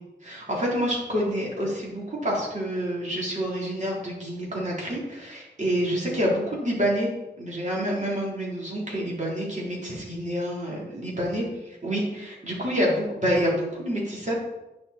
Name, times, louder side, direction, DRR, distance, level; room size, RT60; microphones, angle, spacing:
voice 1, 0.2-7.1 7.4-11.5 11.8-14.3, equal, 40° right, -4 dB, 3.7 m, -27 dB
10.0 x 6.7 x 4.3 m, 1.0 s
wide cardioid pair, 75°, 18 cm